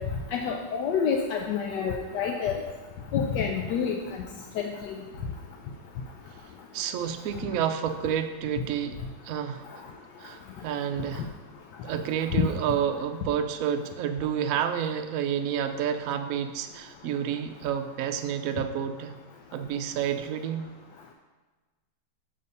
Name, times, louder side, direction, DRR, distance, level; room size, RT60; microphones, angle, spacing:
voice 1, 0.3-2.6 3.1-4.0 4.6-5.0 12.3-12.4, left 7 dB, 75° left, 1 dB, 1.2 m, -28 dB
voice 2, 6.7-9.0 9.2-9.7 10.2-11.3 11.8-19.1 19.5-20.7, right 9 dB, 85° right, 7 dB, 0.7 m, -29 dB
6.7 x 3.9 x 5.3 m, 1.3 s
omnidirectional pair, 2.0 m